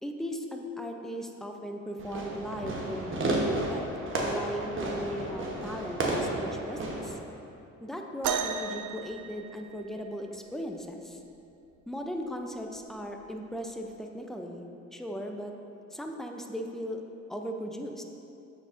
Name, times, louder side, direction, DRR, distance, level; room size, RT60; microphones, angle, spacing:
voice 1, 0.0-3.8 4.2-7.2 7.8-11.2 11.9-15.5 15.9-17.0 17.3-18.0, equal, ahead, 3 dB, 0.4 m, -37 dB
Fireworks, 2.0-7.1, right 2 dB, 40° right, 1.0 m, -32 dB
sound 1, 8.2-10.1 11.8-11.9 12.7-12.9 13.8-13.9, right 7 dB, 80° right, 0.5 m, -34 dB
8.6 x 4.8 x 2.5 m, 2.7 s
cardioid pair, 90°, 30 cm